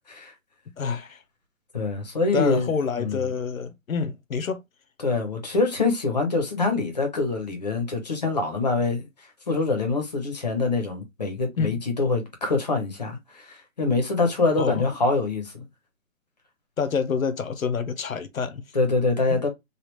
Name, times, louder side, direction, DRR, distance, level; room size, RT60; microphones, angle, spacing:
voice 1, 0.8-1.2 2.3-4.6 11.6-11.8 14.6-14.9 16.8-18.6 19.3-19.4, left 5 dB, 85° left, 0.9 m, -27 dB
voice 2, 1.7-2.7 2.9-3.3 5.0-9.1 9.5-15.5 18.7-19.5, left 3 dB, 30° left, 0.8 m, -25 dB
3.4 x 2.4 x 3.0 m
hypercardioid pair, 170°, 40 cm